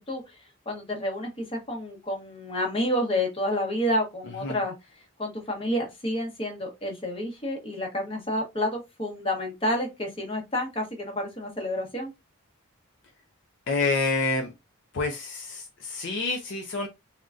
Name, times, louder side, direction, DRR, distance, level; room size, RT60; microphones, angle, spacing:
voice 1, 0.1-0.4 0.7-4.7 5.2-12.1, left 1 dB, 25° left, 0.9 m, -29 dB
voice 2, 13.7-14.5 14.9-16.9, left 3 dB, 55° left, 0.4 m, -28 dB
3.7 x 2.1 x 2.4 m
head